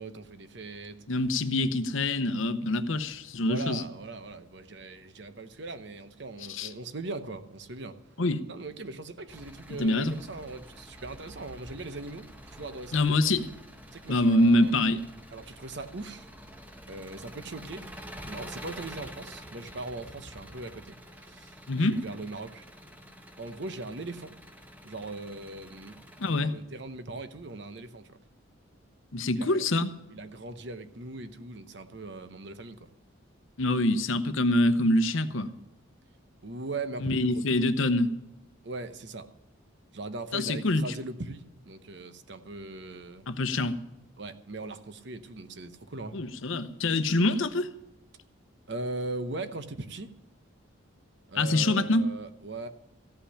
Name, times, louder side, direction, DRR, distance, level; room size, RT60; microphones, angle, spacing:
voice 1, 0.0-1.0 3.3-8.0 8.5-13.0 13.9-14.9 15.3-16.3 16.9-17.9 18.3-22.6 23.4-24.3 24.8-26.0 26.4-28.2 29.3-29.7 30.1-32.9 36.4-37.4 38.6-39.3 39.9-43.3 44.2-46.2 48.7-50.1 51.3-52.7, right 2 dB, 55° right, 10 dB, 0.9 m, -40 dB
voice 2, 1.1-3.8 6.5-6.7 8.2-8.4 9.8-10.1 12.9-13.5 14.1-15.0 21.7-22.0 26.2-26.5 29.1-29.9 33.6-35.5 37.0-38.1 40.3-40.8 43.3-43.8 46.1-47.7 51.3-52.1, left 2 dB, 70° left, 11 dB, 0.8 m, -25 dB
Engine, 9.3-26.4, equal, 10° right, 0.9 m, -47 dB
15.0 x 5.7 x 10.0 m, 0.93 s
head